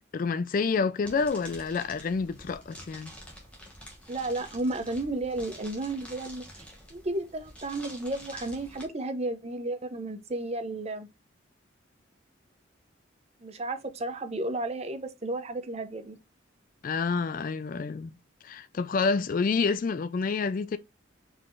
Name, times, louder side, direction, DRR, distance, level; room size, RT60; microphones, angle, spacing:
voice 1, 0.1-3.1 16.8-18.2 18.4-20.8, left 4 dB, 45° left, 0.3 m, -28 dB
sound 1, 1.0-8.8, equal, 5° left, 1.3 m, -48 dB
voice 2, 4.1-6.4 6.9-11.1 13.4-16.2, right 2 dB, 30° right, 0.6 m, -33 dB
4.8 x 3.9 x 2.5 m
head